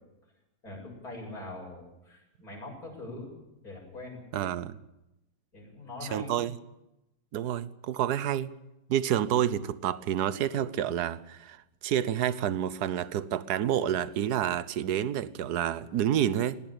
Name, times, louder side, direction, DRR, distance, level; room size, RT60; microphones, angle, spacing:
voice 1, 0.6-3.3 3.6-4.2 5.5-6.4, left 2 dB, 45° left, 8.2 m, -42 dB
voice 2, 4.3-4.8 6.1-6.6 7.3-8.5 8.9-16.6, right 10 dB, 60° right, 1.3 m, -29 dB
19.5 x 17.5 x 8.9 m
omnidirectional pair, 2.2 m